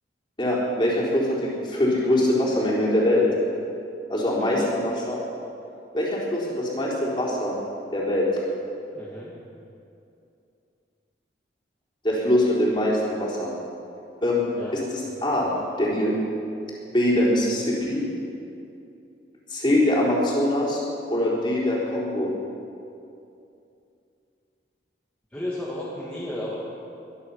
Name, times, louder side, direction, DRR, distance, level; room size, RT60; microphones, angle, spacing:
voice 1, 0.4-3.3 4.1-5.2 5.9-7.6 7.9-8.3 12.0-13.5 14.2-14.4 14.7-15.5 15.8-16.1 16.9-18.0 19.5-20.8 21.1-22.3, left 1 dB, 25° left, -5 dB, 4.0 m, -23 dB
voice 2, 4.4-4.7 8.9-9.4 14.6-14.8 25.3-26.6, left 1 dB, 10° left, -8 dB, 2.1 m, -33 dB
23.0 x 11.0 x 5.7 m, 2.7 s
head